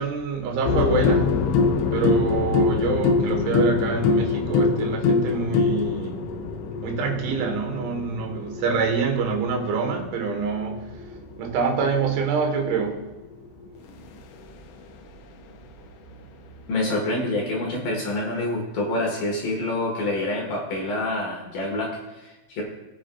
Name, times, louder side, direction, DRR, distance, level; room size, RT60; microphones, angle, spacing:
voice 1, 0.0-1.3 1.9-6.3 6.8-11.0 11.4-13.1, right 5 dB, 80° right, 3 dB, 3.6 m, -26 dB
sound 1, 0.6-12.5 13.9-14.0, left 4 dB, 85° left, 3.2 m, -24 dB
voice 2, 16.7-22.6, left 1 dB, 60° left, -2 dB, 2.6 m, -27 dB
19.5 x 7.6 x 2.3 m, 1.1 s
omnidirectional pair, 5.5 m